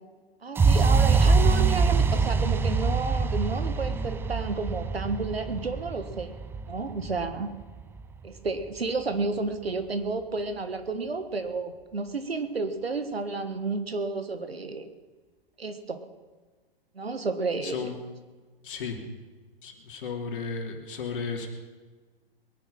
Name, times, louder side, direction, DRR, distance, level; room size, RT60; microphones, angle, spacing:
voice 1, 0.4-6.3 6.7-7.5 8.2-14.9 15.6-16.0 16.9-17.9, right 3 dB, 90° right, 9 dB, 1.6 m, -31 dB
sound 1, 0.6-8.5, right 4 dB, 10° right, 0.5 m, -24 dB
voice 2, 17.6-18.0 18.6-19.0 19.6-21.5, left 5 dB, 60° left, 3 dB, 3.1 m, -34 dB
22.0 x 9.6 x 5.7 m, 1.4 s
figure-of-eight pair, 115°, 29 cm